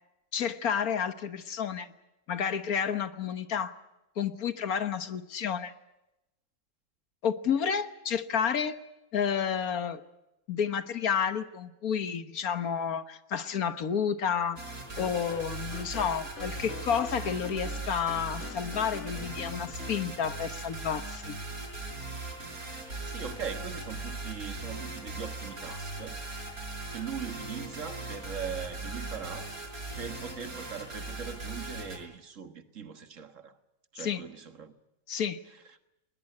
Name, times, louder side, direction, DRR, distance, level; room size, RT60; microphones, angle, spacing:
voice 1, 0.3-1.9 2.3-3.8 4.2-5.7 7.2-8.8 9.1-10.0 10.5-14.6 15.0-21.4 34.0-34.2 35.1-35.4, left 7 dB, 80° left, 1.7 m, -30 dB
sound 1, 14.6-32.0, right 2 dB, 75° right, 6.5 m, -39 dB
sound 2, 14.9-20.1, left 6 dB, 55° left, 1.5 m, -45 dB
voice 2, 23.1-26.2 26.9-29.6 30.0-33.6 33.9-34.7 35.7-35.8, right 6 dB, 60° right, 1.8 m, -40 dB
20.5 x 20.5 x 9.8 m
omnidirectional pair, 1.5 m